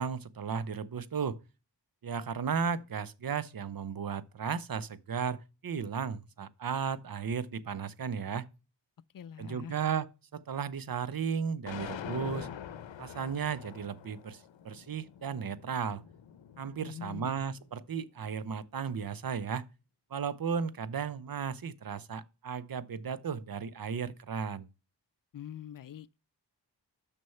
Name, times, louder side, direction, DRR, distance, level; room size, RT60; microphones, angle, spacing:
voice 1, 0.0-1.4 2.0-8.5 9.4-12.5 13.0-16.0 16.6-19.6 20.1-24.7, right 6 dB, 50° right, 0.7 m, -35 dB
voice 2, 9.1-9.8 16.8-17.4 25.3-26.1, left 8 dB, 50° left, 0.5 m, -44 dB
sound 1, 11.7-17.8, left 9 dB, 85° left, 0.7 m, -45 dB
6.3 x 6.0 x 5.5 m
cardioid pair, 60°, 44 cm